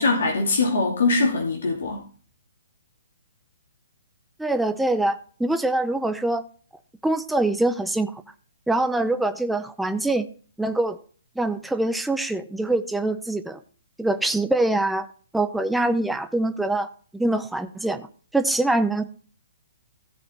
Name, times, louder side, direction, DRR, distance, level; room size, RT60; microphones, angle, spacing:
voice 1, 0.0-2.0, left 3 dB, 65° left, 0 dB, 2.5 m, -22 dB
voice 2, 4.4-6.4 7.0-8.1 8.7-10.3 10.6-11.0 11.4-13.6 14.0-15.1 15.3-16.9 17.1-18.1 18.3-19.0, right 2 dB, 5° right, 8 dB, 0.6 m, -24 dB
15.0 x 5.3 x 4.3 m, 0.42 s
figure-of-eight pair, 130°, 0 cm